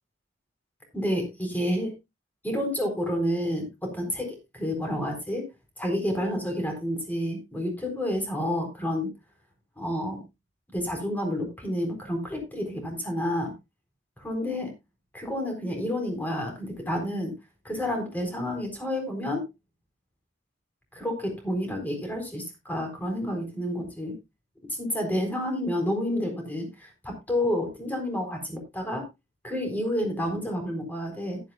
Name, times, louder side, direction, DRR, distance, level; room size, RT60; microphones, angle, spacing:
voice 1, 0.9-1.9 2.4-5.5 5.8-9.1 9.8-10.2 10.7-13.5 14.2-14.7 15.1-17.3 17.6-19.4 20.9-24.2 24.7-29.0 29.4-31.4, left 1 dB, 10° left, 3 dB, 4.0 m, -29 dB
14.5 x 12.0 x 2.2 m, 0.23 s
head